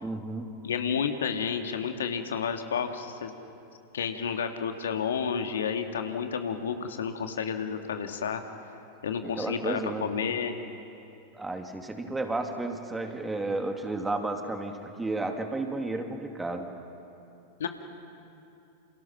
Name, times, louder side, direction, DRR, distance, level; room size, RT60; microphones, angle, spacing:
voice 1, 0.0-0.5 9.2-10.1 11.3-16.7, right 2 dB, 10° right, 4 dB, 2.4 m, -32 dB
voice 2, 0.6-3.3 3.9-8.4 9.0-10.6 17.6-17.7, left 7 dB, 65° left, 6 dB, 1.9 m, -31 dB
29.5 x 28.5 x 5.8 m, 2.8 s
figure-of-eight pair, 90°, 0 cm